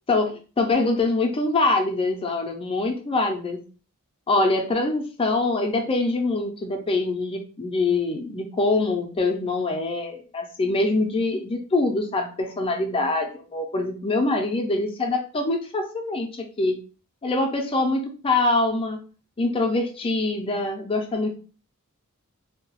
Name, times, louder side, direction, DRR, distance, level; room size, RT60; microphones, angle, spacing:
voice 1, 0.1-3.6 4.3-16.8 17.2-19.0 19.4-21.3, left 2 dB, 25° left, 4 dB, 0.4 m, -24 dB
2.7 x 2.2 x 2.9 m, 0.36 s
head